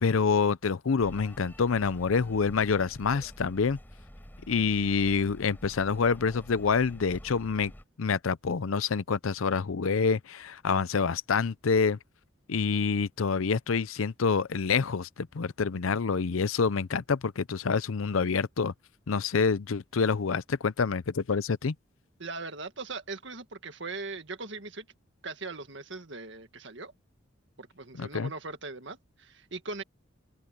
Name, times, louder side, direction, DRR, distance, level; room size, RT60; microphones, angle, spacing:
voice 1, 0.0-3.8 4.5-7.7 8.0-12.0 12.5-18.7 19.1-21.7 27.9-28.3, left 5 dB, 85° left, 0.6 m, -27 dB
sound 1, 1.0-7.8, equal, 10° left, 5.9 m, -48 dB
voice 2, 22.2-24.9 25.2-26.9 27.6-29.8, right 3 dB, 65° right, 1.9 m, -40 dB
open air
head